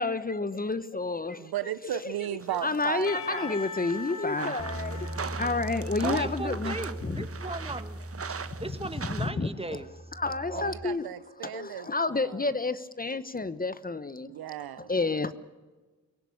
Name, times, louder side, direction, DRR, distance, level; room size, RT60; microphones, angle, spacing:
voice 1, 0.0-2.1 2.6-5.1 5.4-6.8 7.0-7.3 8.6-8.7 9.2-9.5 10.2-11.0 11.4-14.3 14.8-15.3, left 3 dB, 20° left, 1.1 m, -30 dB
voice 2, 1.4-3.5 10.5-12.4 14.3-14.9, right 12 dB, 65° right, 0.9 m, -36 dB
sound 1, 2.4-9.3, right 6 dB, 35° right, 1.3 m, -40 dB
Percussion, 3.1-7.9, left 4 dB, 80° left, 4.0 m, -42 dB
Bass guitar, 4.6-9.4 9.6-10.8, right 1 dB, 5° left, 6.6 m, -39 dB
voice 3, 6.0-8.0 8.3-9.9, right 2 dB, 15° right, 1.8 m, -37 dB
24.5 x 16.5 x 8.6 m
supercardioid pair, 55°, 40 cm